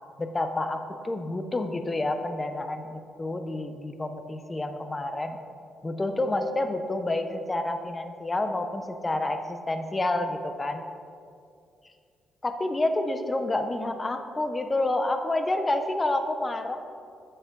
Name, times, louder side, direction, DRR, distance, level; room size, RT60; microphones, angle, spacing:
voice 1, 0.2-5.4 5.8-10.8 12.4-16.8, left 2 dB, 20° left, 7 dB, 0.7 m, -29 dB
8.5 x 6.6 x 3.9 m, 2.4 s
cardioid pair, 90°, 0 cm